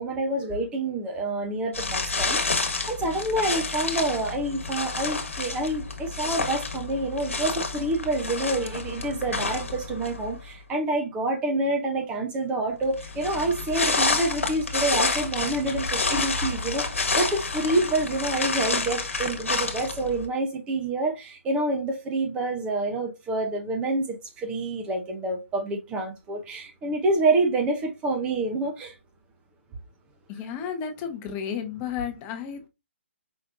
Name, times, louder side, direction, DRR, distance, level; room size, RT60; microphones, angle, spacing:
voice 1, 0.0-28.9, right 2 dB, 15° right, 0.7 m, -27 dB
sound 1, 1.7-10.4 12.9-20.3, left 3 dB, 80° left, 1.3 m, -29 dB
voice 2, 30.3-32.7, left 7 dB, 20° left, 0.9 m, -32 dB
5.2 x 3.2 x 2.5 m
figure-of-eight pair, 140°, 7 cm